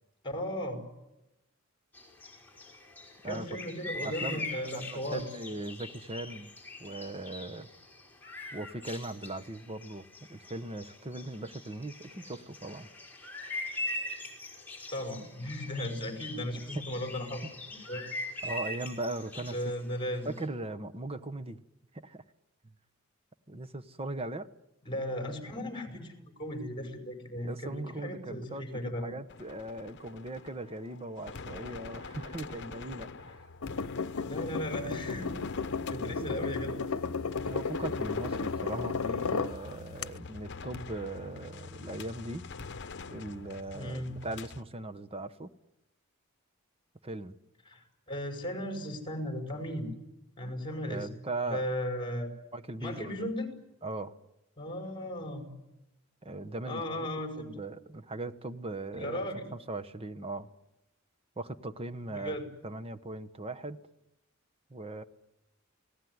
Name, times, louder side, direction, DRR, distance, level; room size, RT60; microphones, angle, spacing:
voice 1, 0.2-0.8 3.2-5.2 14.9-17.5 17.9-18.1 19.5-20.3 24.8-29.1 34.2-35.3 35.9-36.8 43.7-44.1 47.7-49.9 50.4-51.1 51.5-52.3 52.8-53.5 54.6-55.5 56.7-57.5 58.9-59.4 62.1-62.5, equal, 25° left, 4 dB, 5.5 m, -36 dB
sound 1, 1.9-20.4, left 2 dB, 10° left, 5.2 m, -42 dB
voice 2, 3.2-3.6 4.0-6.5 6.8-7.7 8.5-12.9 16.5-16.8 18.4-19.6 20.2-21.6 21.9-22.2 23.5-24.5 27.4-33.5 36.2-36.4 37.4-42.5 43.1-45.5 47.0-47.4 50.9-51.7 52.5-53.3 53.8-54.1 56.2-57.1 57.3-59.3 59.7-60.5 61.4-62.4 62.6-63.8 64.7-65.0, right 2 dB, 25° right, 11 dB, 1.1 m, -39 dB
sound 2, 29.3-44.6, left 4 dB, 55° left, 1.0 m, -45 dB
sound 3, 33.6-39.5 40.0-40.1, left 4 dB, 90° left, 0.8 m, -33 dB
28.5 x 18.5 x 9.6 m, 0.97 s
head